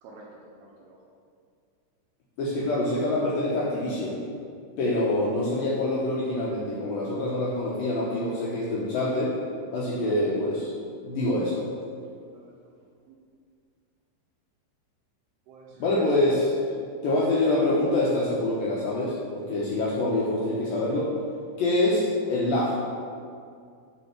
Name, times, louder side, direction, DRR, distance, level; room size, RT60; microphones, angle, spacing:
voice 1, 0.0-1.0 9.9-10.1 12.3-12.6 13.1-13.2 15.5-16.1 16.8-17.1, right 3 dB, 75° right, -3 dB, 2.5 m, -49 dB
voice 2, 2.4-4.2 4.8-9.3 9.7-10.7 11.0-11.6 15.8-16.5 17.0-21.1 21.6-22.0 22.3-22.8, left 1 dB, 75° left, -6 dB, 2.2 m, -25 dB
8.5 x 4.4 x 5.8 m, 2.2 s
omnidirectional pair, 5.2 m